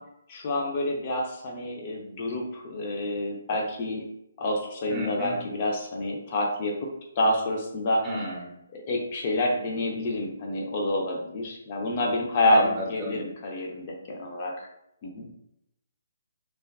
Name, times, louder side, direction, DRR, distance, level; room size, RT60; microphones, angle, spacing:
voice 1, 0.3-4.0 4.4-6.9 7.2-8.0 8.7-14.7 15.0-15.3, left 1 dB, 40° left, 0 dB, 0.4 m, -28 dB
voice 2, 4.9-5.4 8.0-8.5 12.4-13.2 15.2-15.4, equal, 20° right, -3 dB, 0.5 m, -30 dB
2.4 x 2.2 x 2.2 m, 0.79 s
figure-of-eight pair, 140°, 0 cm